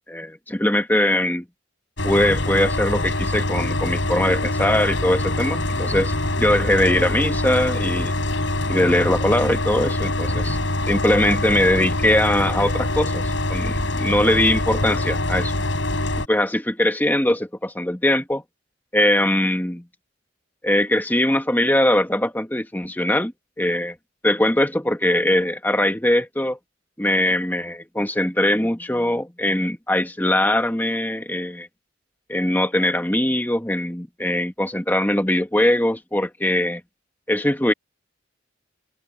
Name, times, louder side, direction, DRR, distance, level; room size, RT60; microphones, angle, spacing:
voice 1, 0.1-1.4 2.0-8.2 8.7-10.6 10.9-15.5 16.3-18.4 18.9-19.8 20.6-23.3 23.6-24.0 24.2-26.6 27.0-31.7 32.3-36.8 37.3-37.7, left 1 dB, 10° left, 1.5 m, -21 dB
sound 1, 2.0-16.3, left 1 dB, 70° left, 6.5 m, -24 dB
head